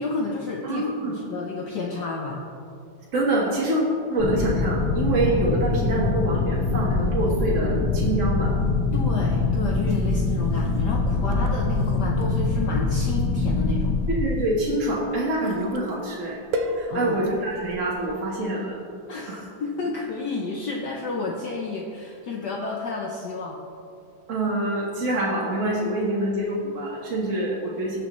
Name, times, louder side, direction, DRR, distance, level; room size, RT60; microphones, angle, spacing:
voice 1, 0.0-2.4 8.9-14.0 16.9-17.2 19.1-23.6, left 3 dB, 65° left, 0 dB, 1.3 m, -31 dB
voice 2, 0.6-1.2 3.1-8.5 14.1-16.4 16.7-18.8 19.3-19.4 24.3-28.0, right 1 dB, 40° right, -5 dB, 1.5 m, -25 dB
sound 1, 4.2-14.2, left 3 dB, 85° left, 1.9 m, -24 dB
sound 2, 8.5-18.3, equal, 60° right, 1.1 m, -38 dB
17.5 x 6.9 x 3.1 m, 2.5 s
omnidirectional pair, 2.2 m